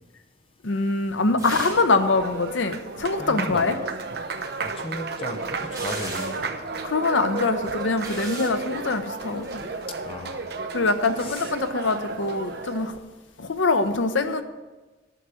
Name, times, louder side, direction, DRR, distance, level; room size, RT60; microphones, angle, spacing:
voice 1, 0.6-3.8 6.8-9.6 10.7-13.0 13.4-14.4, left 3 dB, 85° left, 8 dB, 0.8 m, -24 dB
Applause, 1.1-13.0, right 3 dB, 55° right, 0.7 m, -33 dB
sound 1, 1.4-1.9 2.2-2.3 4.7-6.5 7.4-8.6 9.4-9.6, right 2 dB, 20° right, 3.1 m, -38 dB
voice 2, 3.2-3.8 4.6-6.5 10.0-10.5 11.2-11.5, left 1 dB, 30° left, 5 dB, 0.9 m, -35 dB
9.9 x 6.3 x 7.0 m, 1.2 s
head